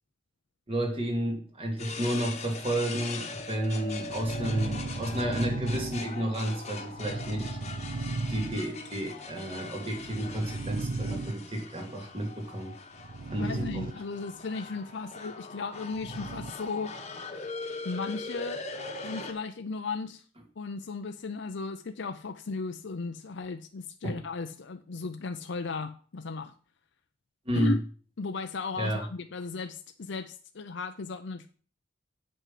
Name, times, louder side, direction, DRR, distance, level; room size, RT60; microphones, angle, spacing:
voice 1, 0.7-7.6 8.0-12.8 13.3-13.9 24.0-24.2 27.5-27.7 28.8-29.0, right 1 dB, 30° right, 2 dB, 2.4 m, -31 dB
sound 1, 1.8-19.3, left 3 dB, 35° left, 1.3 m, -41 dB
sound 2, 3.6-6.5 6.9-9.0 9.9-11.7 12.9-13.9 14.2-14.3 15.9-16.7, right 3 dB, 45° right, 0.4 m, -36 dB
voice 2, 13.4-17.0 17.8-18.6 19.0-20.2 20.6-26.5 27.5-27.8 28.2-31.5, left 4 dB, 65° left, 7 dB, 0.6 m, -36 dB
8.2 x 5.5 x 7.5 m, 0.41 s
head